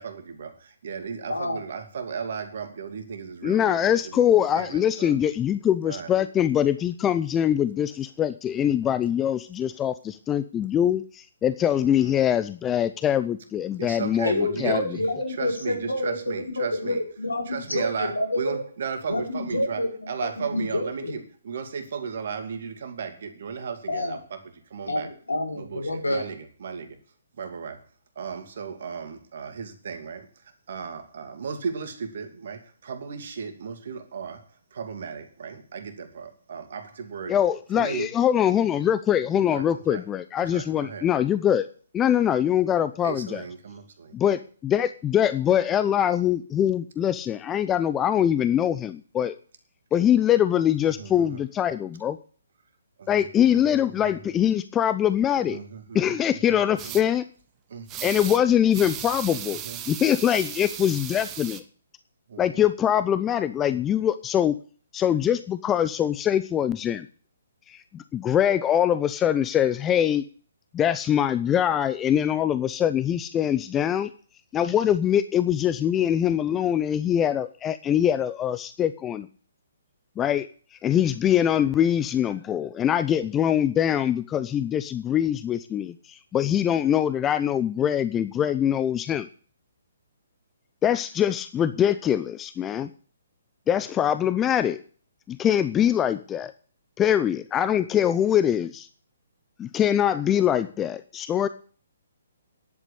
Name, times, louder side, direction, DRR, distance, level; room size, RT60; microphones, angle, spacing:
voice 1, 0.0-5.2 5.9-6.1 11.8-12.1 13.7-15.1 15.4-17.0 17.5-25.1 25.5-27.0 27.4-27.8 28.2-37.4 37.7-38.1 39.5-40.0 40.5-41.1 43.0-44.2 50.9-51.4 53.0-53.3 53.5-54.3 55.3-57.0 57.7-57.9 59.5-59.8 62.3-62.6, right 6 dB, 60° right, 7 dB, 2.6 m, -35 dB
voice 2, 1.3-1.6 14.2-16.2 16.6-18.6 19.1-19.9 20.2-21.1 23.9-24.2 24.9-26.2, left 1 dB, 85° left, 2 dB, 4.9 m, -28 dB
voice 3, 3.4-14.8 37.3-41.7 41.9-43.4 44.1-49.3 49.9-52.2 53.1-55.6 55.9-57.2 58.0-59.6 59.9-61.6 62.4-64.6 64.9-67.1 67.7-70.2 70.7-74.1 74.5-79.3 80.2-89.3 90.8-92.9 93.7-94.8 95.3-96.5 97.0-98.9 99.6-101.5, left 10 dB, 15° left, 12 dB, 0.6 m, -23 dB
sound 1, 56.8-57.0 57.9-58.4 58.7-61.6, right 11 dB, 25° right, 1.2 m, -36 dB
10.5 x 8.3 x 8.5 m, 0.42 s
figure-of-eight pair, 135°, 0 cm